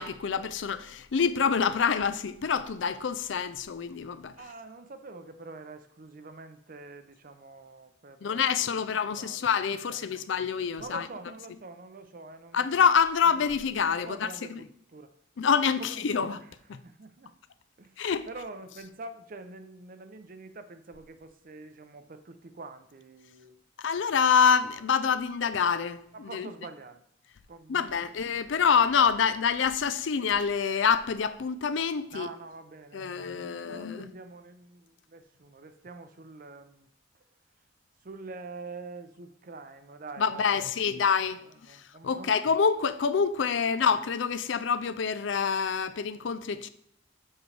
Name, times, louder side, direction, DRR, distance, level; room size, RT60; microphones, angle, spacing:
voice 1, 0.0-4.3 8.2-11.0 12.5-14.6 15.4-16.4 16.7-16.8 18.0-18.3 23.8-26.5 27.7-32.3 32.9-34.1 40.2-41.4 41.7-46.7, left 6 dB, 75° left, 0.4 m, -26 dB
voice 2, 4.3-8.8 9.1-9.4 9.9-10.4 10.8-12.7 13.3-13.4 14.0-15.1 15.8-17.3 17.8-23.5 26.1-27.0 27.5-27.9 28.3-28.4 32.1-36.9 38.0-40.8 41.4-42.4, right 3 dB, 45° right, 0.6 m, -46 dB
7.3 x 6.1 x 3.3 m
head